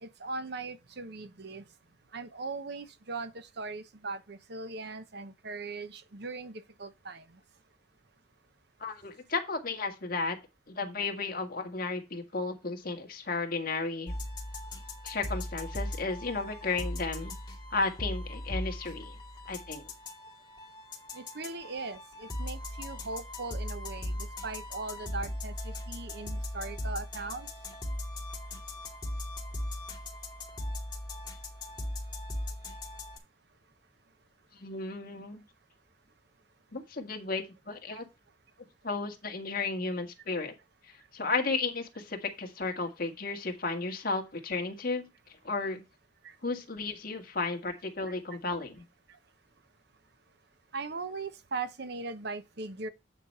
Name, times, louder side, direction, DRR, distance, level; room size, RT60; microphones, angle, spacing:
voice 1, 0.0-1.6 2.1-7.2 21.1-24.2 24.4-27.5 37.9-38.0 48.1-48.2 50.7-52.9, right 3 dB, 60° right, 0.9 m, -39 dB
voice 2, 8.8-10.4 10.7-14.1 15.0-17.3 17.7-19.2 19.5-19.9 34.6-35.4 36.7-38.0 38.8-40.5 41.1-45.1 45.4-45.8 46.4-48.8, left 3 dB, 50° left, 1.7 m, -33 dB
sound 1, 14.1-33.2, left 1 dB, 25° left, 2.2 m, -38 dB
8.9 x 4.6 x 5.4 m
head